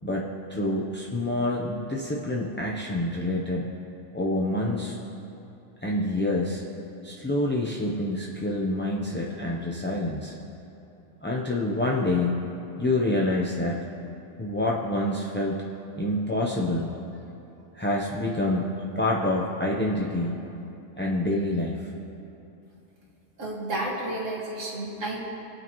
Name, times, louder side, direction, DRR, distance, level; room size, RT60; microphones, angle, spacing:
voice 1, 0.0-3.7 4.1-5.0 5.8-6.6 7.0-10.3 11.2-12.4 12.8-13.8 14.4-15.6 16.0-16.9 17.7-20.4 21.0-21.9, left 1 dB, 15° left, -3 dB, 0.5 m, -27 dB
voice 2, 23.4-25.2, right 1 dB, 90° right, -3 dB, 2.2 m, -31 dB
22.0 x 8.7 x 3.0 m, 2.9 s
omnidirectional pair, 1.3 m